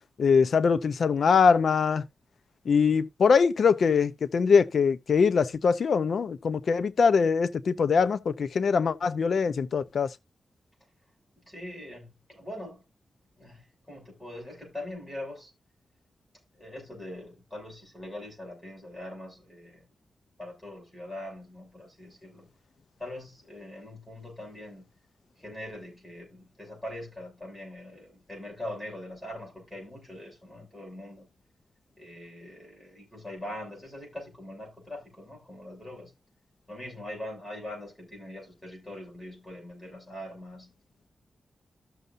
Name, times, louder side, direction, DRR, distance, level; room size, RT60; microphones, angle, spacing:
voice 1, 0.2-2.0 2.7-10.1, left 5 dB, 70° left, 0.6 m, -23 dB
voice 2, 11.5-12.8 13.4-15.5 16.6-19.9 20.4-22.5 23.0-24.9 25.4-31.3 32.0-36.1 36.7-40.7, left 1 dB, 10° left, 6.7 m, -42 dB
14.0 x 6.7 x 2.6 m
wide cardioid pair, 115°, 0 cm